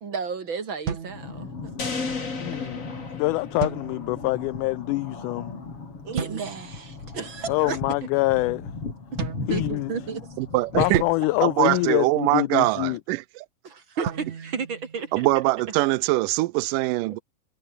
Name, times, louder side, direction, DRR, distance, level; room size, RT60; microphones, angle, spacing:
voice 1, 0.0-1.7 2.5-2.7 6.0-8.1 9.4-10.3 10.8-11.0 14.0-15.3, right 5 dB, 40° right, 2.5 m, -33 dB
sound 1, 0.9-1.9 3.6-4.4 6.2-6.8 9.2-10.2 10.9-12.4 14.0-15.6, right 7 dB, 60° right, 4.1 m, -35 dB
sound 2, 1.0-12.0, left 4 dB, 40° left, 5.6 m, -38 dB
sound 3, 1.8-4.1, left 4 dB, 25° left, 2.4 m, -33 dB
voice 2, 2.4-2.8 3.1-5.5 7.5-8.7 9.5-9.9 10.7-13.0, left 20 dB, 80° left, 1.9 m, -25 dB
voice 3, 10.4-11.0 11.4-13.2 15.1-17.2, right 20 dB, 80° right, 2.3 m, -23 dB
omnidirectional pair, 4.0 m